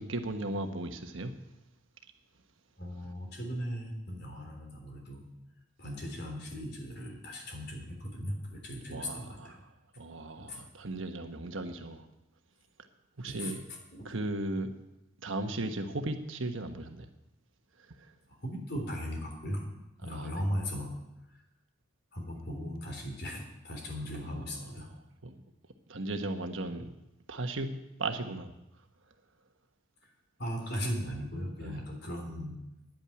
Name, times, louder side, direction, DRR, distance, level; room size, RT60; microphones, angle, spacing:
voice 1, 0.0-1.3 8.9-9.6 10.0-12.1 13.2-13.6 14.0-14.7 15.2-17.0 20.1-20.3 24.2-24.4 25.2-25.4 25.9-26.9 27.3-28.5 31.6-31.8, right 2 dB, 70° right, 6 dB, 1.3 m, -36 dB
voice 2, 2.8-5.2 5.8-9.6 10.4-10.6 13.2-14.1 18.3-19.6 20.0-20.9 21.3-21.4 22.1-24.9 30.0-30.1 30.4-32.6, equal, 50° left, 1 dB, 3.5 m, -38 dB
10.5 x 8.9 x 9.7 m, 0.92 s
head